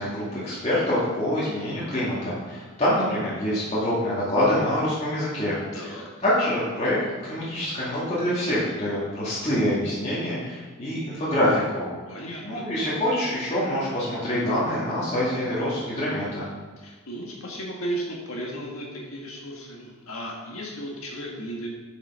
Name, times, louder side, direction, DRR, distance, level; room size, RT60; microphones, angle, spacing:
voice 1, 0.0-5.5 6.2-7.0 7.3-11.9 12.4-16.4, left 1 dB, 30° left, -10 dB, 2.3 m, -25 dB
voice 2, 5.7-6.2 12.1-12.6 16.8-21.7, right 1 dB, 65° left, -2 dB, 1.7 m, -35 dB
7.9 x 5.9 x 5.6 m, 1.3 s
head